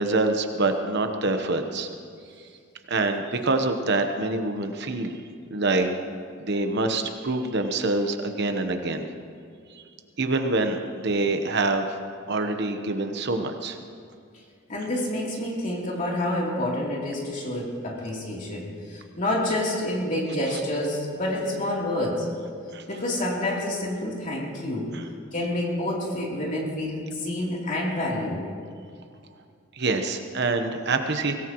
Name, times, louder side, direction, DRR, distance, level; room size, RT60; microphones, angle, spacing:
voice 1, 0.0-1.9 2.4-2.5 2.9-5.2 5.5-5.9 6.4-9.0 9.7-9.8 10.2-13.8 20.5-20.6 22.7-22.8 24.9-25.1 29.7-31.3, right 2 dB, 55° right, 6 dB, 1.1 m, -26 dB
voice 2, 14.7-22.3 22.9-24.9 25.3-28.4, left 1 dB, 40° left, -3 dB, 3.3 m, -28 dB
23.5 x 18.0 x 3.1 m, 2.2 s
head